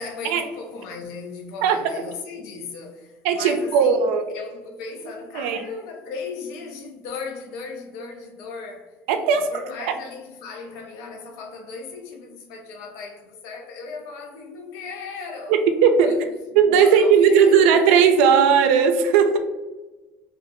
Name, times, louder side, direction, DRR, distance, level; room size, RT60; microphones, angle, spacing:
voice 1, 0.0-8.9 9.5-15.6 16.0-16.2 16.7-17.7, left 4 dB, 80° left, 2 dB, 0.5 m, -37 dB
voice 2, 1.6-1.9 3.2-4.3 5.3-5.7 9.1-9.5 15.5-16.2 16.6-19.4, right 6 dB, 85° right, 7 dB, 0.3 m, -17 dB
2.8 x 2.2 x 2.8 m, 1.2 s
supercardioid pair, 90°, 6 cm